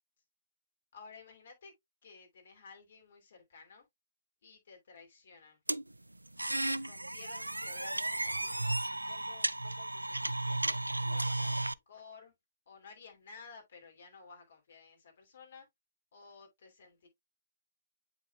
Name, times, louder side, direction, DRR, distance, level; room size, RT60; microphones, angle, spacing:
voice 1, 0.9-1.7 2.0-3.9 4.4-5.6 6.8-8.8 9.0-12.3 12.7-15.7 16.1-17.1, left 5 dB, 50° left, 2.8 m, -55 dB
sound 1, 5.7-11.7, right 2 dB, 85° right, 0.3 m, -34 dB
8.0 x 5.1 x 2.3 m
figure-of-eight pair, 125°, 0 cm